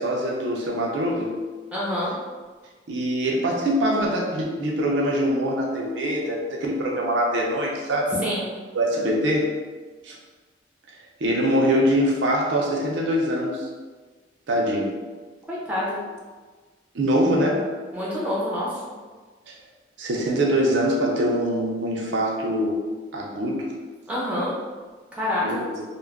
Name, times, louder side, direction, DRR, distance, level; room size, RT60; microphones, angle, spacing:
voice 1, 0.0-1.4 2.9-8.1 8.7-9.6 10.0-10.2 11.2-13.7 14.5-15.0 16.9-17.8 19.5-19.6 20.0-23.8 25.4-25.8, equal, 75° right, -2 dB, 0.5 m, -23 dB
voice 2, 1.7-2.1 8.2-8.5 15.5-16.0 17.9-18.8 24.1-24.5 25.1-25.6, left 1 dB, 5° right, -7 dB, 0.6 m, -27 dB
2.2 x 2.1 x 3.4 m, 1.4 s
head